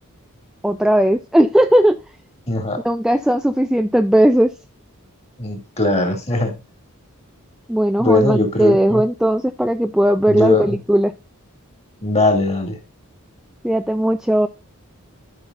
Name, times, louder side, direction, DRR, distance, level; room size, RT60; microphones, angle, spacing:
voice 1, 0.6-2.0 2.8-4.5 7.7-11.1 13.6-14.5, right 1 dB, 5° right, 0.3 m, -17 dB
voice 2, 2.5-2.8 5.4-6.5 8.0-9.0 10.3-10.7 12.0-12.8, left 2 dB, 30° left, 2.4 m, -19 dB
12.5 x 5.8 x 2.5 m
head